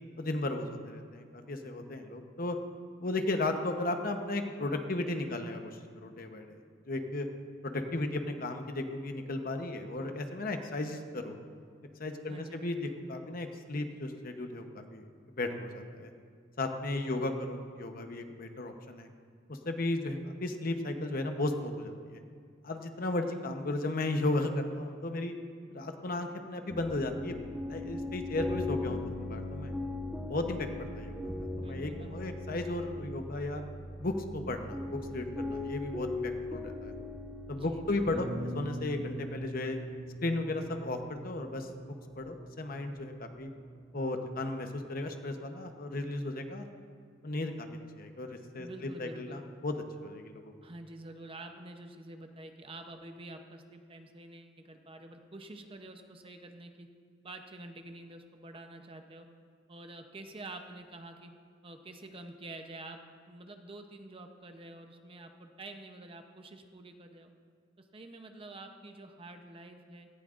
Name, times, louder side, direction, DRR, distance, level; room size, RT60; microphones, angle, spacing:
voice 1, 0.2-2.6 3.0-6.6 6.9-7.3 7.6-11.4 12.0-16.1 16.6-19.1 19.5-22.2 22.6-25.3 25.7-27.4 27.7-29.7 30.3-30.7 30.9-33.6 34.0-36.9 37.5-39.8 40.2-43.5 43.9-46.6 47.2-47.7 48.0-48.7 49.0-49.7 50.0-50.5, left 2 dB, 50° left, 5 dB, 1.0 m, -35 dB
voice 2, 12.3-12.9 17.1-17.5 23.2-23.5 31.5-32.4 37.5-38.3 48.6-49.4 50.6-56.9 57.2-59.3 59.7-61.3 61.6-63.0 63.3-67.3 67.8-70.1, right 2 dB, 30° right, 5 dB, 0.8 m, -48 dB
sound 1, 26.7-44.5, left 1 dB, 5° right, 1.2 m, -40 dB
17.5 x 14.5 x 2.5 m, 2.2 s
head